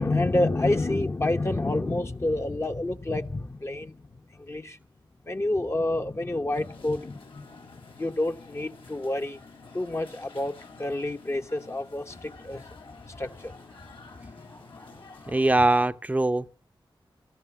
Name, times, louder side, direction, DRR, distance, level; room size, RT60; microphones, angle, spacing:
voice 1, 0.0-4.8 5.3-7.7 7.9-9.4 9.7-10.5 10.8-15.4, left 2 dB, 30° left, 1.1 m, -29 dB
sound 1, 6.5-15.9, left 4 dB, 75° left, 3.7 m, -49 dB
voice 2, 15.3-16.5, right 2 dB, 15° right, 0.7 m, -22 dB
18.5 x 13.0 x 6.0 m
cardioid pair, 65°, 9 cm